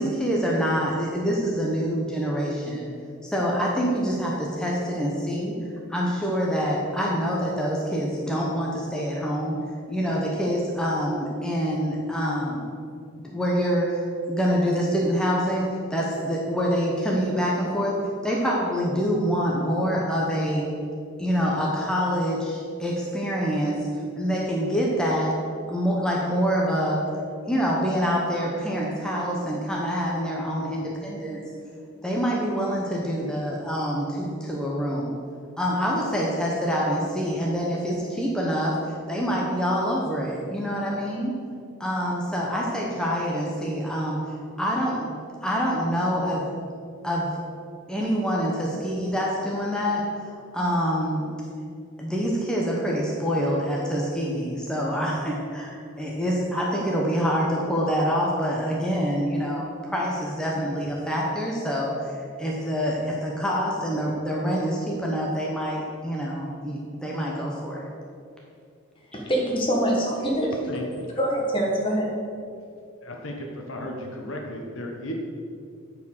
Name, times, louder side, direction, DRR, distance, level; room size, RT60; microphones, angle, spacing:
voice 1, 0.0-2.9 3.2-9.6 9.9-12.7 13.2-18.0 18.2-20.7 21.2-23.9 24.2-25.4 25.7-27.1 27.5-31.4 32.0-35.2 35.6-41.4 41.8-45.1 45.4-46.5 47.0-47.3 47.9-50.1 50.5-51.3 52.0-67.9, equal, 5° left, -4 dB, 0.9 m, -26 dB
voice 2, 69.1-70.5 71.2-72.1, right 1 dB, 25° left, -2 dB, 1.6 m, -24 dB
voice 3, 73.0-75.1, left 1 dB, 60° left, 1 dB, 1.1 m, -35 dB
9.0 x 4.8 x 6.4 m, 2.4 s
head